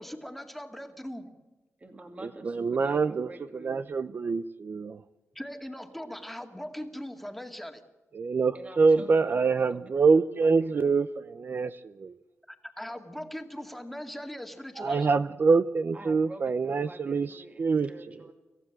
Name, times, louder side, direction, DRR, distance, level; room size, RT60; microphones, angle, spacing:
voice 1, 0.0-1.4 5.3-7.8 12.5-15.1, equal, 5° left, 5 dB, 2.1 m, -40 dB
voice 2, 1.8-3.8 8.5-11.1 15.9-18.3, right 2 dB, 30° right, 5 dB, 2.4 m, -48 dB
voice 3, 2.5-3.3 3.6-5.0 8.1-12.1 14.8-17.3 17.6-17.9, right 4 dB, 45° right, 13 dB, 0.6 m, -25 dB
27.5 x 15.5 x 7.5 m, 1.1 s
wide cardioid pair, 130°, 5 cm